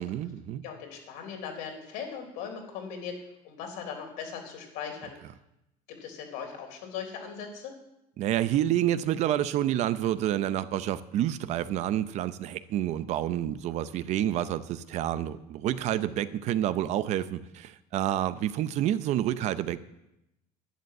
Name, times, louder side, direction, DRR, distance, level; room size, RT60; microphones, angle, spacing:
voice 1, 0.0-0.6 8.2-19.8, right 12 dB, 50° right, 13 dB, 0.7 m, -28 dB
voice 2, 0.6-3.2 3.4-5.2 5.9-7.7, left 7 dB, 75° left, 3 dB, 3.7 m, -39 dB
11.5 x 10.5 x 7.7 m, 0.87 s
cardioid pair, 150°, 15 cm